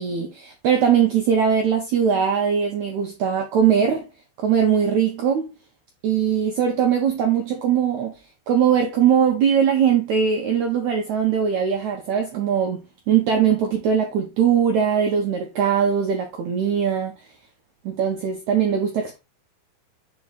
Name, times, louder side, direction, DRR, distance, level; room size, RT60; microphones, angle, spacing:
voice 1, 0.0-4.1 4.4-5.5 6.0-8.1 8.5-17.1 17.8-19.2, right 7 dB, 85° right, 1.6 m, -21 dB
5.5 x 4.8 x 4.0 m
omnidirectional pair, 4.6 m